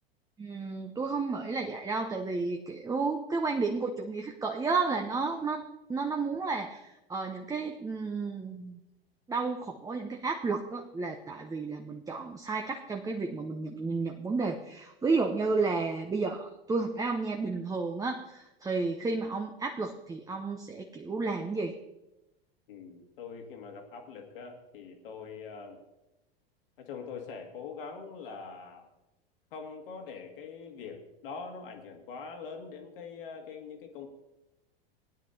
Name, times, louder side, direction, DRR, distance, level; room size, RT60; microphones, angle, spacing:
voice 1, 0.4-5.6 5.9-8.8 9.3-21.8, right 4 dB, 10° right, 3 dB, 0.7 m, -32 dB
voice 2, 22.7-25.8 26.8-28.9 29.5-34.1, left 5 dB, 65° left, 3 dB, 2.1 m, -43 dB
19.0 x 10.0 x 2.8 m, 0.96 s
figure-of-eight pair, 90°, 31 cm